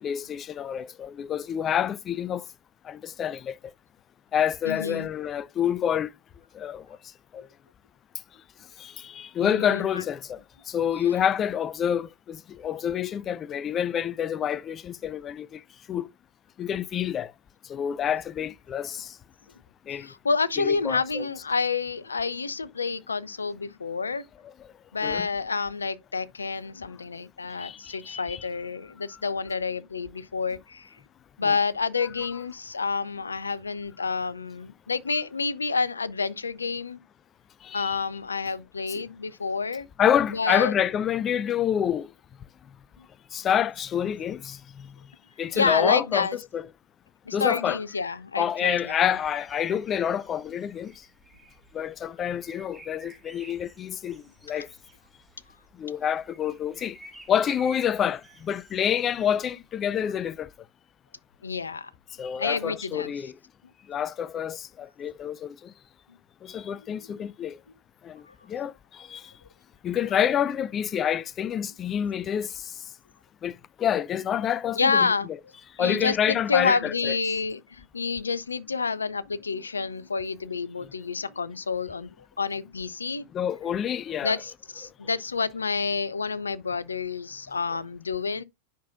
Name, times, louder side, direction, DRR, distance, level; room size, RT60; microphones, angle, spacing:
voice 1, 0.0-2.4 2.8-3.6 4.3-6.1 6.5-6.8 7.3-7.5 8.8-10.4 10.7-15.6 15.9-16.1 16.6-17.3 17.7-19.1 19.9-20.1 20.6-21.3 25.0-25.3 27.6-28.4 31.4-31.5 37.6-38.0 39.0-39.1 40.0-42.1 43.3-44.9 45.4-46.3 46.5-46.6 47.3-47.8 48.4-50.9 51.7-54.7 55.8-57.0 57.3-60.5 62.2-63.3 63.9-65.7 66.4-67.6 68.0-68.2 68.5-69.2 69.8-72.7 73.4-75.1 75.8-77.2 83.3-84.4, left 9 dB, 25° left, 0.4 m, -28 dB
voice 2, 4.6-5.1 9.4-10.0 19.9-24.2 24.9-30.9 31.4-37.0 37.7-39.9 40.3-40.7 45.5-46.4 47.3-49.0 61.4-61.9 62.4-63.1 67.0-67.1 68.3-68.4 74.8-75.3 75.8-83.3 84.2-88.4, left 5 dB, 75° left, 0.6 m, -29 dB
sound 1, 48.7-60.4, equal, 5° right, 1.8 m, -51 dB
10.0 x 6.0 x 2.4 m
figure-of-eight pair, 90°, 0 cm